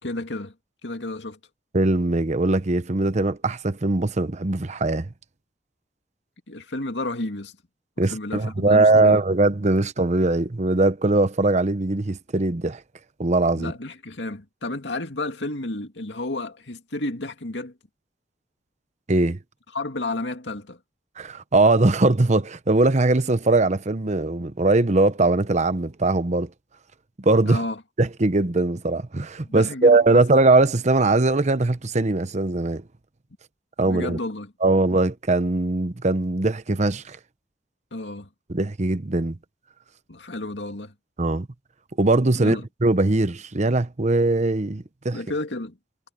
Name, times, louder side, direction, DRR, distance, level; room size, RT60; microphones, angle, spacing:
voice 1, 0.0-0.5 0.8-1.4 6.5-7.6 8.0-9.2 13.5-17.8 19.7-20.8 27.4-27.8 29.4-30.2 33.8-34.5 37.9-38.3 40.1-40.9 42.3-42.7 45.1-45.8, left 2 dB, 80° left, 2.3 m, -32 dB
voice 2, 1.7-5.1 8.0-12.8 13.2-13.7 19.1-19.4 21.2-26.5 27.2-27.6 28.0-32.8 33.8-34.2 34.6-37.2 38.5-39.4 41.2-41.5 42.0-45.2, right 2 dB, 40° right, 0.9 m, -21 dB
head